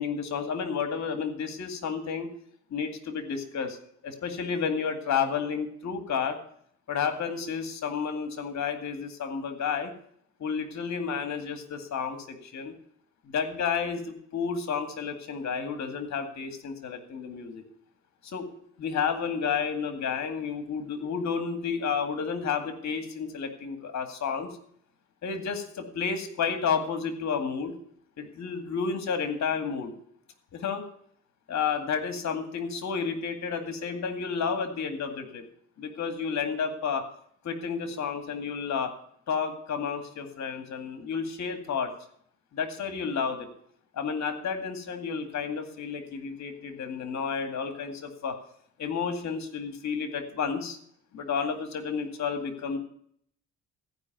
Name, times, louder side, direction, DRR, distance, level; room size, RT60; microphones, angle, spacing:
voice 1, 0.0-2.3 2.7-3.8 4.0-6.4 6.9-9.9 10.4-12.7 13.3-17.6 18.2-18.5 18.8-24.5 25.2-27.7 28.2-29.9 30.5-30.8 31.5-35.4 35.8-37.0 37.4-38.9 39.3-41.9 42.5-43.5 43.9-48.4 48.8-50.8 51.1-52.8, left 6 dB, 65° left, 7 dB, 2.2 m, -31 dB
15.0 x 5.5 x 9.2 m, 0.65 s
cardioid pair, 90°, 30 cm